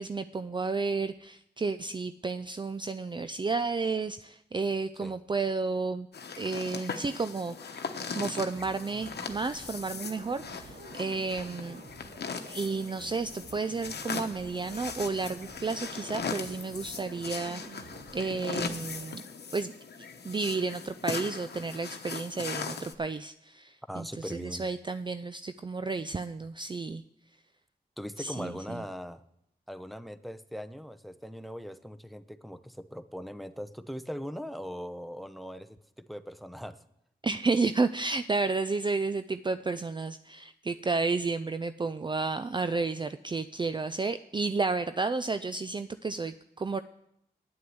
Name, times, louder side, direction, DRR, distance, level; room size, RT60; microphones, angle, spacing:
voice 1, 0.0-6.1 6.4-7.9 8.1-11.8 12.5-19.2 19.5-19.7 20.2-27.0 28.2-28.8 37.2-46.8, right 4 dB, 25° right, 11 dB, 0.4 m, -32 dB
sound 1, 6.1-22.9, left 5 dB, 70° left, 1.0 m, -39 dB
sound 2, 8.5-19.1, right 3 dB, 65° right, 2.1 m, -49 dB
voice 2, 23.9-24.7 28.0-29.2 29.7-36.8, equal, ahead, 12 dB, 0.8 m, -40 dB
9.7 x 8.4 x 7.8 m, 0.78 s
cardioid pair, 50°, 17 cm